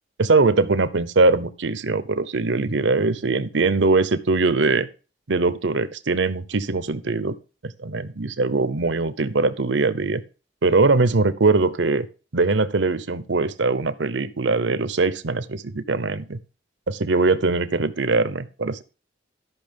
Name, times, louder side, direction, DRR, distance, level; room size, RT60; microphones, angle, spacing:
voice 1, 0.2-4.9 5.3-7.4 7.6-10.2 10.6-12.1 12.3-16.4 16.9-18.8, right 3 dB, 80° right, 14 dB, 0.9 m, -21 dB
12.5 x 5.9 x 5.3 m, 0.34 s
head